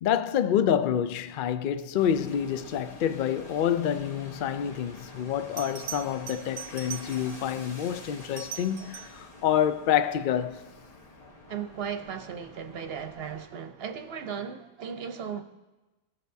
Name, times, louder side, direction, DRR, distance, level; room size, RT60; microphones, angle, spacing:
voice 1, 0.0-10.6, left 9 dB, 60° left, 0.5 m, -27 dB
sound 1, 2.0-13.5, left 2 dB, 35° left, 1.0 m, -48 dB
Bell, 5.6-7.5 8.2-9.3 12.0-12.2, right 9 dB, 90° right, 0.9 m, -41 dB
voice 2, 11.5-15.4, right 7 dB, 60° right, 0.8 m, -36 dB
16.5 x 6.6 x 2.7 m
omnidirectional pair, 1.3 m